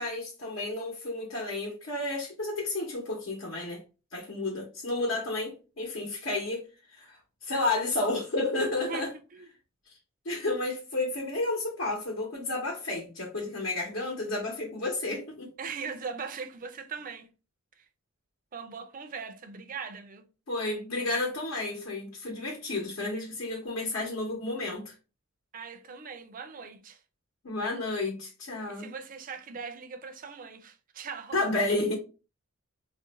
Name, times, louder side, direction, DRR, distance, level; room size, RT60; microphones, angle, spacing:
voice 1, 0.0-3.8 4.1-6.6 6.9-9.1 10.2-15.5 20.5-24.9 27.4-28.9 31.3-31.9, left 2 dB, 70° left, 0.9 m, -31 dB
voice 2, 8.6-9.5 15.6-17.3 17.8-17.9 18.5-20.2 25.5-27.0 28.7-31.4, right 5 dB, 40° right, 0.4 m, -40 dB
2.5 x 2.1 x 3.8 m
head